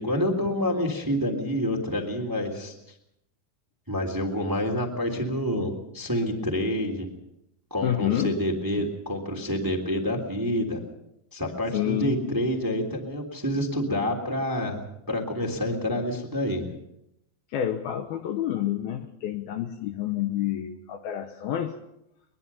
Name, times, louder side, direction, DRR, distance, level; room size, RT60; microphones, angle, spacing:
voice 1, 0.0-2.7 3.9-7.1 7.7-10.8 11.3-16.6, equal, 5° right, 1 dB, 2.1 m, -28 dB
voice 2, 7.8-8.4 11.7-12.2 17.5-21.8, left 11 dB, 70° left, 5 dB, 2.5 m, -28 dB
23.0 x 21.5 x 5.6 m, 0.81 s
omnidirectional pair, 5.1 m